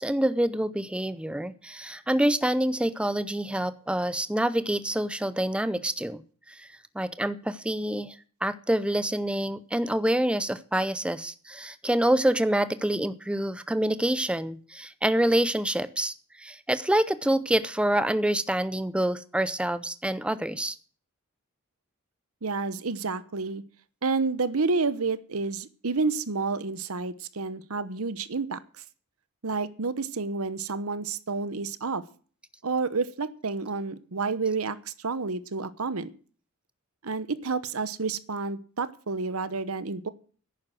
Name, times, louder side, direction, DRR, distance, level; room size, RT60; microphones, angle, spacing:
voice 1, 0.0-6.2 6.5-6.7 6.9-8.2 8.4-20.8, right 1 dB, 5° right, 14 dB, 0.5 m, -26 dB
voice 2, 22.4-23.6 24.0-28.8 29.4-32.0 32.6-36.1 37.0-40.1, right 4 dB, 70° right, 16 dB, 1.0 m, -30 dB
11.0 x 9.4 x 7.6 m, 0.42 s
head